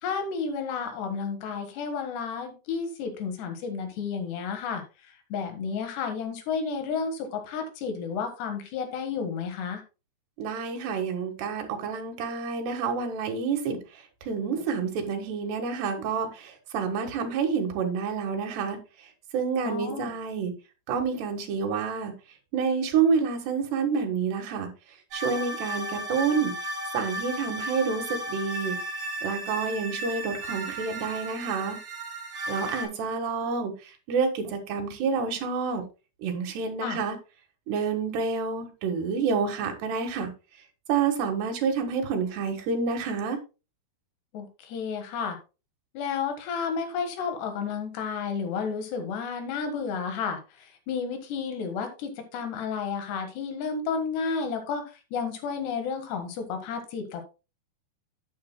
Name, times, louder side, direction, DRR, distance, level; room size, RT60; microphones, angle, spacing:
voice 1, 0.0-4.8 5.3-9.8 19.6-20.1 36.8-37.0 44.3-45.4 46.0-54.8 55.1-57.2, left 5 dB, 85° left, 3.7 m, -31 dB
voice 2, 10.4-13.8 14.3-18.8 19.3-20.5 20.9-22.1 22.5-24.7 25.1-26.5 26.9-28.8 29.2-31.8 32.5-33.7 34.1-35.8 36.2-37.2 37.7-40.3 40.9-43.4, right 5 dB, 80° right, 3.6 m, -28 dB
sound 1, 25.1-32.9, right 1 dB, 50° right, 4.8 m, -35 dB
11.5 x 9.3 x 2.2 m
omnidirectional pair, 4.7 m